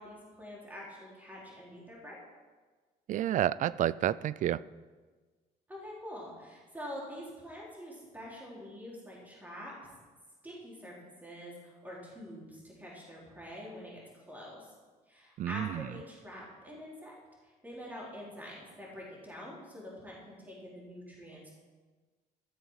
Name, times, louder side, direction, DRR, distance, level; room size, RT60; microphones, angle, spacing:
voice 1, 0.0-2.2 5.7-9.7 10.4-14.7 15.1-17.1 17.4-21.5, equal, 10° right, -5 dB, 4.0 m, -46 dB
voice 2, 3.1-4.6 15.4-15.8, right 12 dB, 50° right, 19 dB, 0.4 m, -30 dB
13.5 x 7.2 x 5.7 m, 1.4 s
cardioid pair, 110°, 17 cm